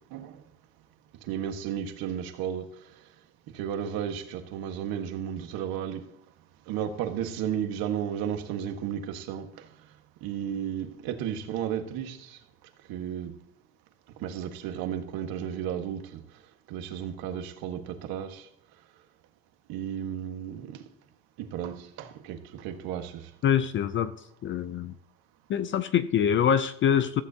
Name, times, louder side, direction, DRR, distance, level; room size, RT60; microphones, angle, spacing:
voice 1, 1.3-2.7 3.5-6.0 6.7-9.5 10.2-12.4 12.9-13.3 14.2-16.2 16.7-18.5 19.7-20.7 21.4-23.2, right 9 dB, 60° right, 1.6 m, -33 dB
voice 2, 23.4-24.1 24.4-25.0 25.5-27.2, left 8 dB, 30° left, 0.4 m, -24 dB
15.0 x 15.0 x 2.8 m
cardioid pair, 160°, 40 cm